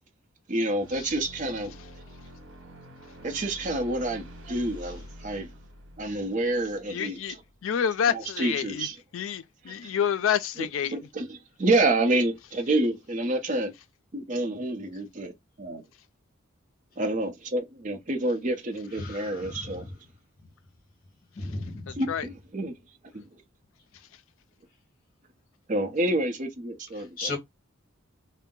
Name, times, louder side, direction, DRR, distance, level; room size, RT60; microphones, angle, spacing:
voice 1, 0.5-1.7 3.2-5.5 6.0-7.4 8.1-9.0 9.7-9.9 10.6-13.7 14.1-15.3 15.6-15.8 17.0-19.9 21.9-22.8 23.1-23.4 25.7-27.3, right 2 dB, 35° right, 0.6 m, -28 dB
sound 1, 0.8-7.5, equal, 85° right, 1.1 m, -47 dB
voice 2, 6.9-7.4 7.6-8.9 9.1-10.9 21.9-22.3, left 8 dB, 75° left, 0.4 m, -28 dB
voice 3, 19.0-19.6 21.4-21.9 27.2-27.4, left 3 dB, 45° left, 1.0 m, -34 dB
2.7 x 2.1 x 3.7 m
head